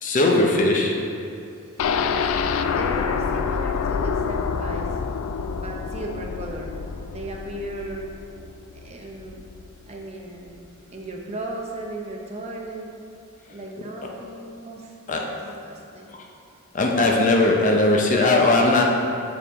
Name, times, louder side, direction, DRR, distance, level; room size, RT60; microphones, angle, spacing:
voice 1, 0.0-1.1 15.1-15.2 16.1-16.2 16.7-18.8, left 2 dB, 35° left, 0 dB, 0.7 m, -19 dB
voice 2, 1.7-8.1 8.7-9.4 9.8-10.6 10.9-13.0 13.5-16.1, right 2 dB, 30° right, 0 dB, 0.6 m, -36 dB
sound 1, 1.8-9.7 10.0-10.1 10.5-10.6, left 6 dB, 65° left, 0.3 m, -27 dB
7.1 x 4.8 x 3.6 m, 2.5 s
head